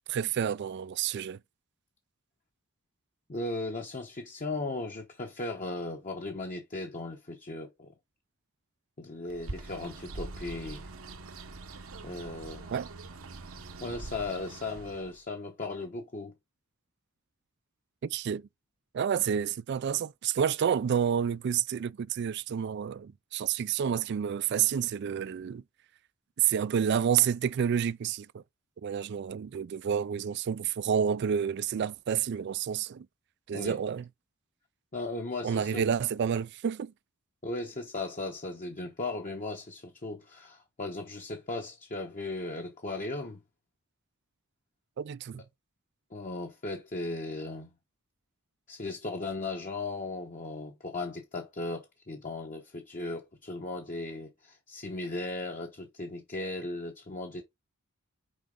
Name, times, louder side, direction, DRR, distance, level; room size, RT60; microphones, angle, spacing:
voice 1, 0.1-1.4 12.7-12.9 18.0-18.4 18.9-25.6 26.4-28.4 28.8-33.1 33.5-34.1 35.4-36.9 45.0-45.4, right 8 dB, 50° right, 0.3 m, -29 dB
voice 2, 3.3-7.9 9.0-10.9 12.0-12.7 13.8-16.3 33.5-33.8 34.9-35.8 37.4-43.4 46.1-47.7 48.7-57.4, left 2 dB, 35° left, 1.0 m, -37 dB
Bird, 9.3-15.2, right 3 dB, 70° right, 1.1 m, -43 dB
6.3 x 4.7 x 3.8 m
head